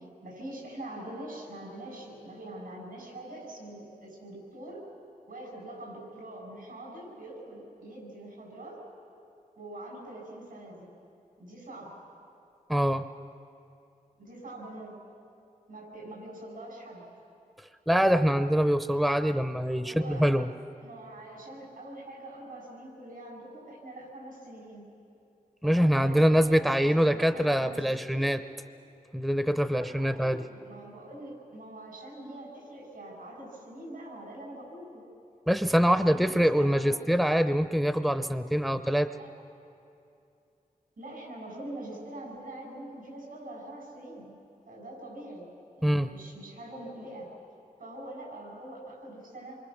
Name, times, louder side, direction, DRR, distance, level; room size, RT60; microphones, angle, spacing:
voice 1, 0.0-4.8 5.3-8.8 9.6-10.9 11.4-11.9 14.2-14.9 15.7-17.0 19.8-20.3 20.8-24.8 25.6-28.3 29.7-35.0 36.1-37.2 39.1-39.3 41.0-45.5 45.8-47.3 47.8-49.6, right 1 dB, 85° right, -1 dB, 7.3 m, -44 dB
voice 2, 12.7-13.0 17.9-20.5 25.6-28.4 29.1-30.4 35.5-39.1 45.8-46.1, equal, ahead, 10 dB, 0.7 m, -24 dB
27.5 x 24.0 x 6.5 m, 2.6 s
wide cardioid pair, 85°, 15 cm